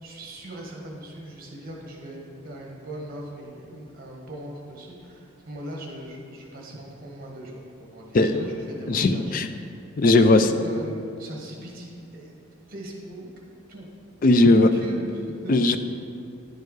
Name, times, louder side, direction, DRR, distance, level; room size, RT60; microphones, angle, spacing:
voice 1, 0.0-9.2 10.1-13.3 13.7-13.9 14.2-15.6, right 1 dB, 45° right, -1 dB, 1.4 m, -39 dB
voice 2, 8.1-8.5 8.9-9.5 10.0-10.5 14.2-14.7 15.5-15.8, left 2 dB, 45° left, 9 dB, 0.4 m, -18 dB
10.5 x 4.6 x 4.7 m, 2.5 s
head